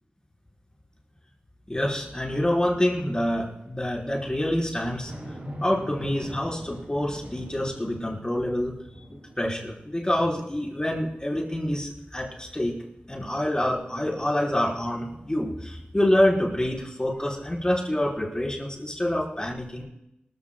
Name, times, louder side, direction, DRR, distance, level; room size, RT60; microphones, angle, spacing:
voice 1, 1.7-5.1 5.6-8.7 9.1-12.7 13.1-19.8, left 1 dB, 20° left, -3 dB, 4.3 m, -26 dB
sound 1, 5.1-10.6 11.1-11.2 15.1-16.2, equal, 55° right, 5.8 m, -43 dB
26.0 x 14.5 x 2.3 m, 0.86 s
wide cardioid pair, 65°, 4 cm